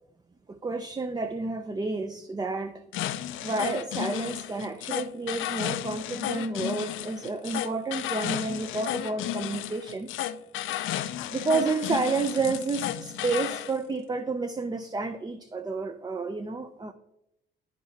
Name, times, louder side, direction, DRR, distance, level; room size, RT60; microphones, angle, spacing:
voice 1, 0.5-2.8 3.4-10.1 11.3-16.9, right 3 dB, 20° right, 9 dB, 0.5 m, -30 dB
sound 1, 2.9-13.7, left 13 dB, 80° left, 0.4 m, -33 dB
12.0 x 4.7 x 2.8 m, 0.81 s
cardioid pair, 90°, 20 cm